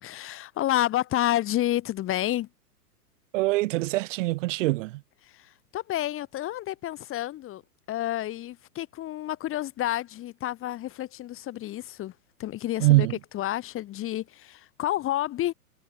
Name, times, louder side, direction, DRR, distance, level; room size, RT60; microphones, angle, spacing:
voice 1, 0.0-2.5 5.2-7.6 7.9-12.1 12.4-15.5, left 14 dB, 30° left, 2.4 m, -30 dB
voice 2, 3.3-5.0 12.8-13.2, right 20 dB, 55° right, 4.6 m, -23 dB
hypercardioid pair, 120°, 46 cm